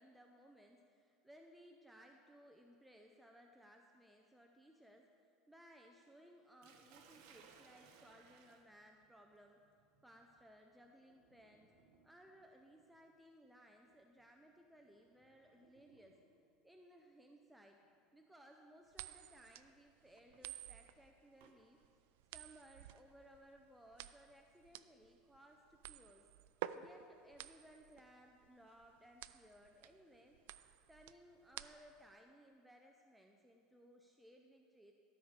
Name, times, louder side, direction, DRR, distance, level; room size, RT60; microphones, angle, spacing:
voice 1, 0.0-9.6 10.0-11.7 12.0-16.2 16.6-17.8 18.1-21.8 22.3-26.3 26.7-34.9, equal, ahead, 2 dB, 0.4 m, -62 dB
Sink (filling or washing), 6.6-16.6 17.7-18.0 18.5-18.6 20.1-21.6, right 6 dB, 65° right, 1.0 m, -68 dB
sound 1, 18.9-32.1, right 13 dB, 85° right, 0.3 m, -51 dB
13.0 x 4.8 x 6.5 m, 2.3 s
cardioid pair, 165°, 0 cm